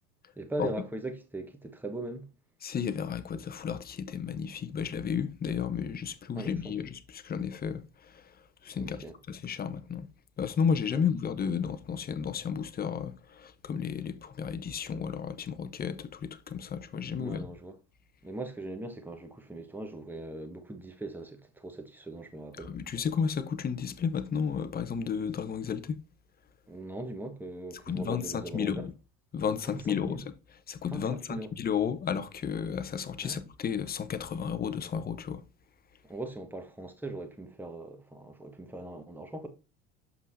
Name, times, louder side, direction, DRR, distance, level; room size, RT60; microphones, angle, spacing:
voice 1, 0.4-2.3 6.3-6.8 8.7-9.2 10.9-11.0 17.2-17.7 18.2-22.8 26.7-28.9 29.6-30.2 30.9-31.5 33.2-33.4 36.0-39.5, right 2 dB, 5° right, 1.4 m, -40 dB
voice 2, 2.6-8.2 8.6-10.1 10.4-17.5 22.6-26.0 27.9-28.9 29.3-30.2 30.7-35.4, left 7 dB, 30° left, 0.9 m, -33 dB
6.8 x 5.5 x 2.7 m
supercardioid pair, 90°, 31 cm